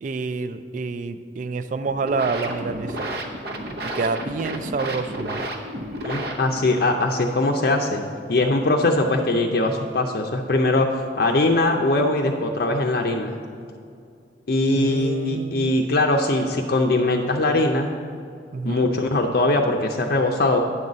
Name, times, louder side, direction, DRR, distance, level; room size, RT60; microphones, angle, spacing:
voice 1, 0.0-3.1 3.8-5.5 14.7-15.8 18.5-18.9, right 4 dB, 45° right, 12 dB, 0.3 m, -28 dB
sound 1, 1.8-6.8, right 1 dB, 60° right, 0.8 m, -32 dB
voice 2, 6.0-8.0 8.3-13.3 14.5-17.9 18.6-20.6, left 2 dB, 60° left, 2 dB, 0.5 m, -21 dB
9.7 x 4.0 x 7.4 m, 2.3 s
head